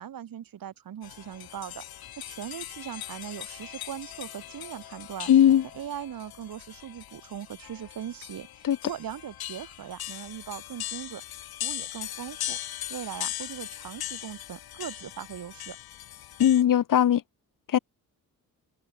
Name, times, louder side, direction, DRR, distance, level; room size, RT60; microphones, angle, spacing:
voice 1, 0.0-5.3 5.7-11.2 11.6-12.6 12.9-15.8, right 10 dB, 70° right, 5.6 m, -40 dB
sound 1, 1.0-16.6, left 12 dB, 85° left, 1.9 m, -40 dB
voice 2, 5.3-5.6 8.6-8.8 16.4-17.2 17.7-17.8, left 10 dB, 60° left, 1.6 m, -19 dB
cardioid pair, 130°, 36 cm